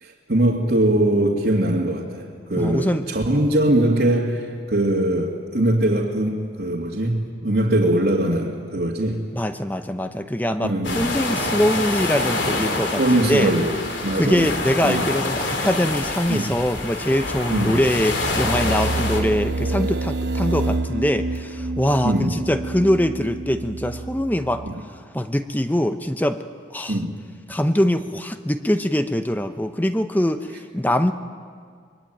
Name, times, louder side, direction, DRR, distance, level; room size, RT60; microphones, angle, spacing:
voice 1, 0.0-9.2 10.6-11.1 13.0-13.7 14.0-14.5 14.8-15.0 16.3-16.5 17.5-17.8 22.0-22.3 24.6-24.8 26.9-27.1, right 1 dB, 65° right, -4 dB, 2.3 m, -21 dB
voice 2, 2.6-3.0 9.3-13.5 14.1-24.6 25.1-26.4 26.7-27.0 27.5-31.1, equal, 10° left, 9 dB, 0.8 m, -23 dB
sound 1, 10.5-10.8 11.1-11.4 11.7-12.1 12.4-12.6 13.0-13.3 13.6-13.8 17.0-24.7, right 2 dB, 80° right, 1.2 m, -29 dB
sound 2, 10.8-19.2, left 2 dB, 90° left, 3.3 m, -26 dB
24.0 x 22.5 x 9.2 m, 2.1 s
head